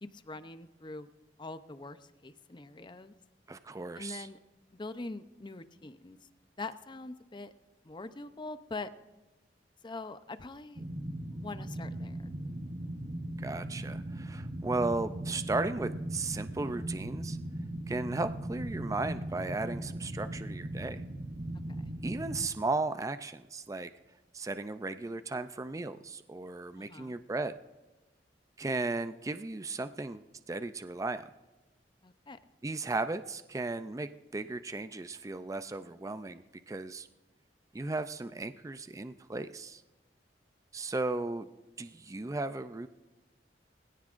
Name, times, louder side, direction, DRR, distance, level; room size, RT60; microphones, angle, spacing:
voice 1, 0.0-1.1 1.4-3.1 3.9-4.4 4.7-6.2 6.6-7.5 7.8-8.9 9.8-10.8 11.3-12.3 21.8-21.9 26.8-27.1 32.0-32.4, left 3 dB, 25° left, 11 dB, 0.6 m, -43 dB
voice 2, 3.5-4.3 13.4-17.4 17.9-21.0 22.0-23.9 24.3-27.5 28.6-31.3 32.6-37.1 37.7-39.8 40.7-41.5 41.8-42.9, right 3 dB, 20° right, 11 dB, 0.4 m, -35 dB
sound 1, 10.8-22.5, right 1 dB, 40° right, 0.9 m, -38 dB
21.5 x 16.0 x 2.5 m, 1.1 s
head